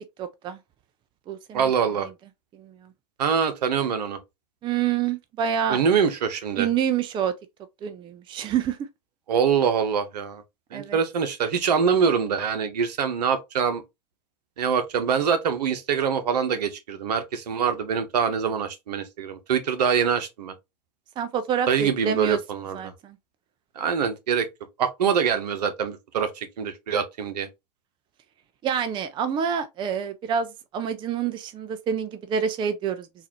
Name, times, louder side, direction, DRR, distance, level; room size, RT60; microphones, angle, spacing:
voice 1, 0.2-0.6 1.3-1.7 2.5-2.7 4.6-5.8 6.6-7.3 7.8-8.8 10.7-11.0 21.2-22.4 22.7-23.2 28.6-33.1, right 8 dB, 20° right, 0.5 m, -27 dB
voice 2, 1.5-2.1 3.2-4.2 5.7-6.7 9.3-10.4 10.7-13.8 14.6-20.5 21.7-22.9 23.7-24.5 24.8-27.5, right 7 dB, 70° right, 1.1 m, -24 dB
3.9 x 2.6 x 2.9 m
hypercardioid pair, 105°, 21 cm